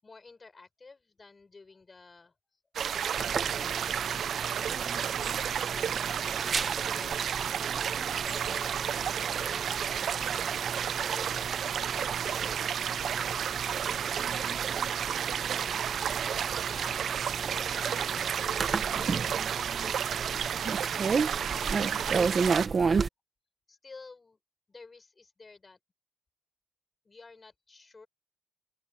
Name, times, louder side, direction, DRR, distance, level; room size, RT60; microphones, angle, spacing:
voice 1, 0.0-2.3 2.8-5.1 5.6-6.3 6.9-7.5 8.2-10.5 10.9-11.5 11.9-19.4 19.7-21.2 21.5-23.1 23.7-24.4 24.7-25.8 27.0-28.1, left 4 dB, 25° left, 7.0 m, -52 dB
sound 1, 2.7-22.7, right 8 dB, 60° right, 0.6 m, -31 dB
sound 2, 3.2-23.1, right 5 dB, 35° right, 1.4 m, -34 dB
open air
wide cardioid pair, 155°, 0 cm